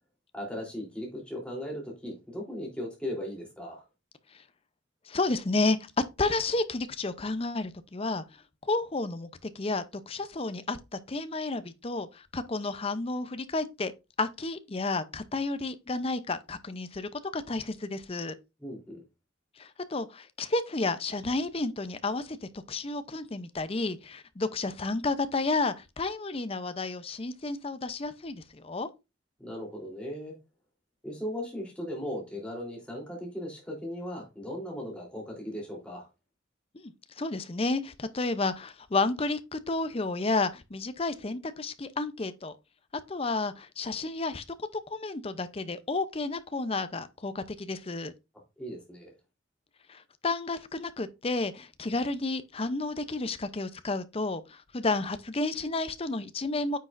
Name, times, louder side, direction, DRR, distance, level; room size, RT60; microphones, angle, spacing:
voice 1, 0.3-3.8 18.6-19.0 29.4-30.3 31.0-36.1 48.6-49.1, equal, 5° left, 3.4 m, -37 dB
voice 2, 5.1-5.8 6.2-8.2 8.7-9.3 9.5-13.9 14.2-18.3 19.6-22.4 22.7-28.9 36.8-36.9 37.2-42.6 43.1-44.4 44.9-48.1 49.9-56.8, left 3 dB, 30° left, 0.6 m, -31 dB
9.4 x 6.1 x 2.5 m
head